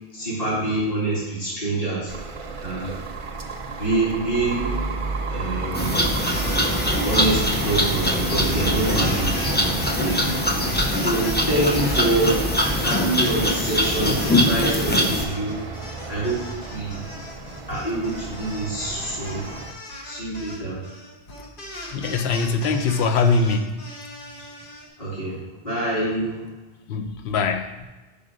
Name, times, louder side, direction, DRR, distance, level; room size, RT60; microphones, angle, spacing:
voice 1, 0.1-2.1 2.6-2.9 3.8-4.7 5.3-6.0 7.0-10.3 10.8-12.4 12.8-15.6 16.1-17.0 17.7-19.4 20.0-20.8 25.0-26.4, right 2 dB, 35° left, -9 dB, 2.3 m, -26 dB
sound 1, 2.1-19.7, right 3 dB, 40° right, 0.5 m, -33 dB
sound 2, 5.7-15.2, left 1 dB, 15° left, 0.4 m, -22 dB
sound 3, 6.2-14.5 14.8-24.9, left 1 dB, 60° left, 1.4 m, -39 dB
voice 2, 21.9-23.8 26.9-27.8, left 4 dB, 90° left, 7 dB, 0.9 m, -22 dB
5.5 x 5.1 x 4.9 m, 1.1 s
omnidirectional pair, 1.1 m